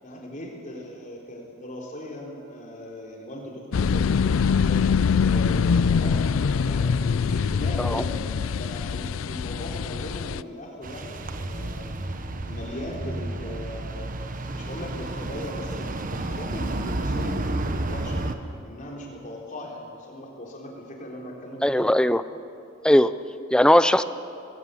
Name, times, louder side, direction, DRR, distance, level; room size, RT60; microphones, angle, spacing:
voice 1, 0.0-8.2 8.6-11.9 12.3-14.1 14.5-18.2 18.6-21.9, left 1 dB, 40° left, -1 dB, 3.9 m, -38 dB
sound 1, 3.7-10.4, left 6 dB, 80° left, 0.4 m, -23 dB
sound 2, 10.8-18.3, right 2 dB, 40° right, 1.1 m, -31 dB
voice 2, 21.6-22.2 22.8-23.1 23.5-24.0, left 1 dB, 5° left, 13 dB, 0.4 m, -18 dB
19.5 x 18.0 x 8.4 m, 2.6 s
head